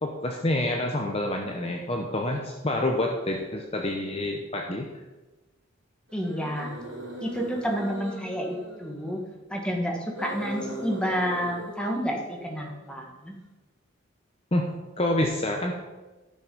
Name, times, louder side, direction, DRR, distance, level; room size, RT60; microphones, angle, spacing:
voice 1, 0.0-4.9 14.5-14.7 15.0-15.7, left 1 dB, 30° left, 1 dB, 0.8 m, -27 dB
sound 1, 1.4-1.7 2.3-2.4 6.1-9.4 10.1-13.0, equal, 60° right, 3.6 m, -40 dB
voice 2, 6.1-6.8 7.2-9.2 9.5-13.4, equal, 5° left, 0 dB, 1.4 m, -30 dB
12.0 x 6.0 x 5.4 m, 1.2 s
head